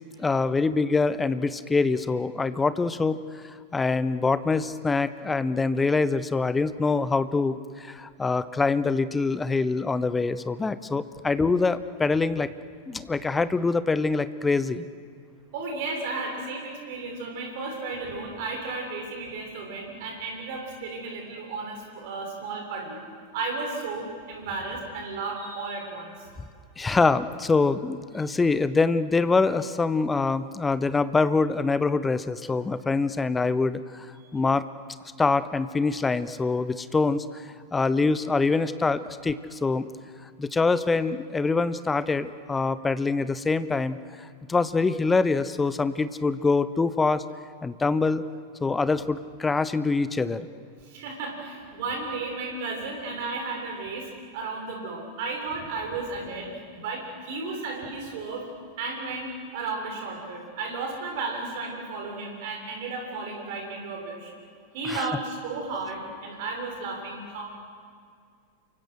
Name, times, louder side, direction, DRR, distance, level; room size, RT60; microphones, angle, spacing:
voice 1, 0.2-12.5 12.9-14.9 26.8-34.1 34.3-34.6 35.2-37.4 37.7-39.9 40.4-47.2 47.6-48.2 48.6-50.5 64.9-65.1, left 4 dB, 15° left, 14 dB, 1.0 m, -25 dB
voice 2, 15.5-23.0 23.3-26.3 50.8-58.5 58.8-64.3 64.7-67.4, right 3 dB, 50° right, 1 dB, 6.9 m, -34 dB
28.5 x 24.5 x 6.4 m, 2.1 s
figure-of-eight pair, 90°, 0 cm